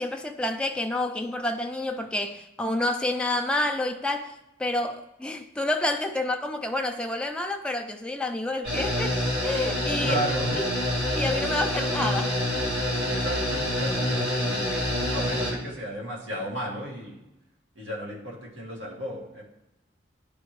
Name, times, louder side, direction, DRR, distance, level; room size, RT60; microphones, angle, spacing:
voice 1, 0.0-4.3 4.6-9.2 9.4-10.2 11.1-12.3, left 1 dB, 5° left, 4 dB, 0.3 m, -28 dB
sound 1, 8.6-15.5, left 1 dB, 65° right, 2.1 m, -27 dB
voice 2, 10.0-10.6 13.1-14.8 15.1-17.2 17.8-19.4, right 1 dB, 90° right, -3 dB, 1.7 m, -34 dB
10.5 x 3.5 x 3.0 m, 0.93 s
head